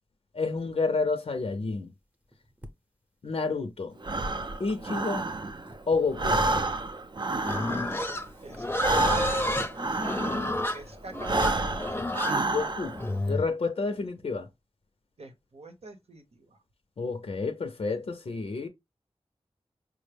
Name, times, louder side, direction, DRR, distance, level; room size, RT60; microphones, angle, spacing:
voice 1, 0.3-1.9 3.2-4.0 4.6-5.3 5.9-6.4 12.5-13.0 13.3-14.5 17.0-18.7, left 4 dB, 70° left, 0.5 m, -29 dB
sound 1, 1.5-2.7 3.4-6.2 6.8-11.8, right 1 dB, 15° right, 0.7 m, -49 dB
Breathing, 4.0-5.8 6.1-10.7 11.2-13.1, right 2 dB, 45° right, 0.4 m, -29 dB
Livestock farm animals working animals, 7.4-13.5, left 1 dB, 20° left, 0.6 m, -30 dB
voice 2, 8.4-12.0 15.2-16.6, right 2 dB, 75° right, 0.9 m, -47 dB
4.7 x 2.0 x 3.3 m
wide cardioid pair, 65°, 11 cm